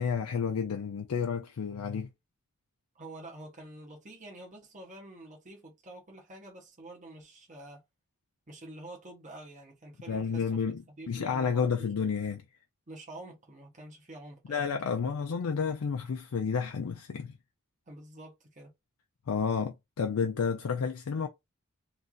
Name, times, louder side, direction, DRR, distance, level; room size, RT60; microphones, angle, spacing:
voice 1, 0.0-2.1 10.1-12.4 14.5-17.4 19.3-21.3, left 6 dB, 75° left, 0.5 m, -31 dB
voice 2, 2.9-7.8 8.5-11.9 12.9-14.9 17.9-18.7, right 1 dB, 35° right, 1.1 m, -48 dB
3.2 x 2.6 x 2.3 m
head